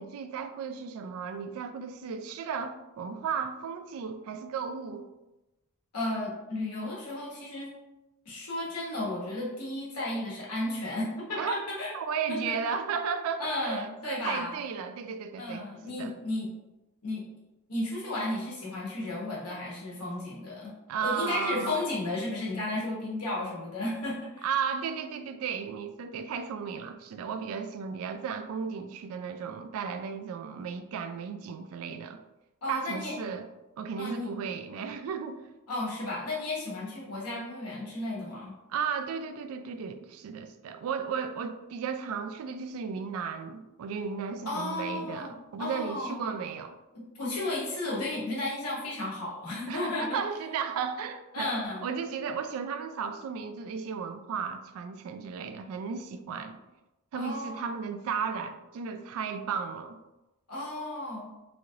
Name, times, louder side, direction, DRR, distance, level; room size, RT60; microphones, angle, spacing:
voice 1, 0.0-5.1 11.4-11.5 11.9-16.1 20.9-21.8 24.4-32.2 32.7-33.4 33.8-35.4 38.7-46.7 49.7-51.5 51.8-56.6 57.1-60.0, right 6 dB, 70° right, 8 dB, 0.3 m, -34 dB
voice 2, 5.9-7.7 8.2-11.9 12.3-12.4 13.4-14.6 15.4-16.5 17.0-17.2 17.7-20.7 21.0-24.5 32.6-33.1 34.0-34.3 35.7-38.6 44.5-46.2 46.9-50.2 51.3-51.9 57.1-57.7 60.5-61.3, left 2 dB, 85° left, -5 dB, 1.2 m, -33 dB
3.1 x 2.7 x 2.5 m, 1.0 s
head